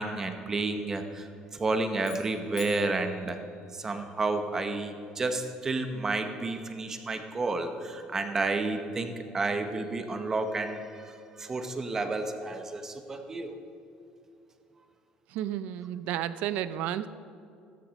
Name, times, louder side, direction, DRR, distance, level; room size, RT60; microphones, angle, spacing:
voice 1, 0.0-3.4 3.7-13.6, right 3 dB, 20° right, 7 dB, 1.0 m, -31 dB
sound 1, 2.0-4.3, left 5 dB, 30° left, 2.6 m, -49 dB
voice 2, 15.3-17.1, right 11 dB, 65° right, 14 dB, 0.6 m, -32 dB
15.5 x 13.5 x 5.2 m, 2.5 s
cardioid pair, 175°, 3 cm